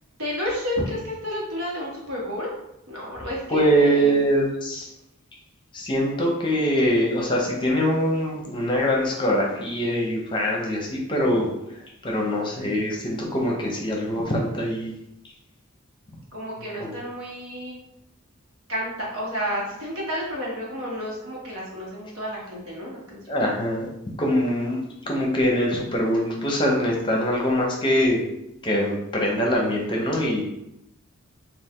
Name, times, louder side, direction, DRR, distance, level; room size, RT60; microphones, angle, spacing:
voice 1, 0.2-2.5 2.9-4.2 16.3-17.8 18.7-23.4, equal, 75° right, -4 dB, 1.2 m, -31 dB
voice 2, 3.5-4.9 5.7-11.5 12.0-14.9 16.8-16.9 23.3-23.9 24.2-24.8 25.1-28.2 28.6-30.4, equal, 20° left, -1 dB, 0.7 m, -23 dB
3.4 x 2.4 x 3.6 m, 0.83 s
head